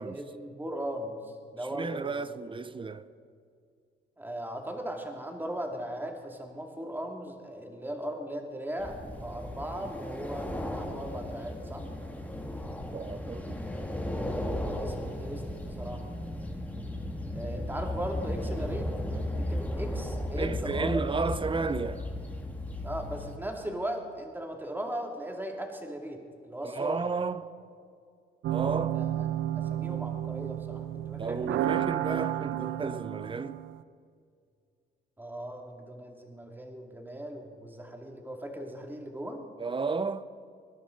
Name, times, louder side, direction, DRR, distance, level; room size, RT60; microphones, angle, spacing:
voice 1, 0.0-2.2 4.2-11.8 14.6-16.0 17.3-21.0 22.8-27.1 28.9-29.1 29.5-31.6 35.2-39.4, right 1 dB, 10° right, 2.4 m, -38 dB
voice 2, 1.6-3.1 12.9-13.6 20.4-22.1 26.6-27.5 28.5-29.0 31.2-33.6 39.6-40.3, right 4 dB, 25° right, 0.7 m, -33 dB
sound 1, 8.8-23.4, left 1 dB, 5° left, 1.9 m, -35 dB
sound 2, 28.4-33.8, right 12 dB, 75° right, 0.5 m, -32 dB
21.0 x 11.0 x 5.2 m
cardioid pair, 90°, 20 cm